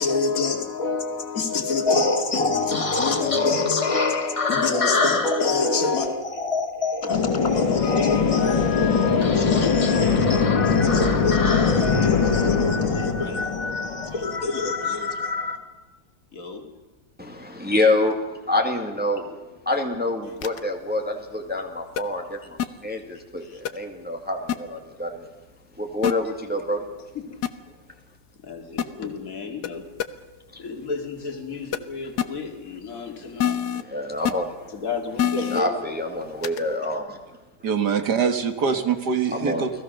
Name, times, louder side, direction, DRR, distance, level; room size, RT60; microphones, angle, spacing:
voice 1, 0.0-6.1 7.0-15.7 16.3-16.6 23.4-23.6 27.3-27.4 28.4-29.9 30.6-33.6 34.7-35.8, left 4 dB, 45° left, 2.8 m, -28 dB
sound 1, 1.9-14.1, left 3 dB, 20° left, 0.9 m, -27 dB
sound 2, 7.1-14.6, left 5 dB, 80° left, 2.9 m, -22 dB
voice 2, 17.2-18.2 18.5-19.4 19.7-25.3 25.8-26.8 30.5-30.6 33.8-34.7 35.5-37.2 39.3-39.6, left 2 dB, 5° right, 2.1 m, -26 dB
sound 3, 20.4-20.6 22.0-22.1 22.6-22.7 23.6-23.7 24.5-24.6 26.0-26.1 27.4-27.5 28.8-28.9 29.6-29.7 30.0-30.1 31.7-31.8 32.2-32.3 33.4-33.8 34.2-34.3 35.2-35.6 36.4-36.6, left 9 dB, 60° left, 1.4 m, -24 dB
voice 3, 37.6-39.7, right 6 dB, 60° right, 2.1 m, -23 dB
29.5 x 19.0 x 6.6 m
omnidirectional pair, 2.1 m